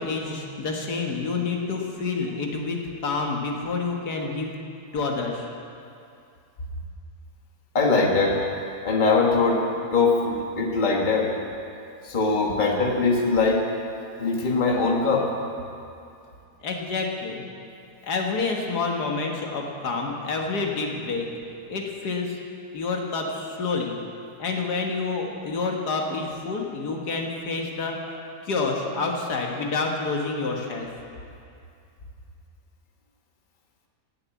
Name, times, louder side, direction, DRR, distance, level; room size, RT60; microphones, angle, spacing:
voice 1, 0.0-4.6 4.9-5.5 16.6-17.4 18.0-21.3 21.7-22.4 22.7-24.0 24.4-28.0 28.4-30.9, left 4 dB, 75° left, 1 dB, 1.9 m, -28 dB
voice 2, 7.7-8.4 8.8-9.7 9.9-11.3 12.0-13.6 14.2-15.3, left 3 dB, 30° left, 0 dB, 1.5 m, -21 dB
17.5 x 7.1 x 8.3 m, 2.5 s
omnidirectional pair, 1.8 m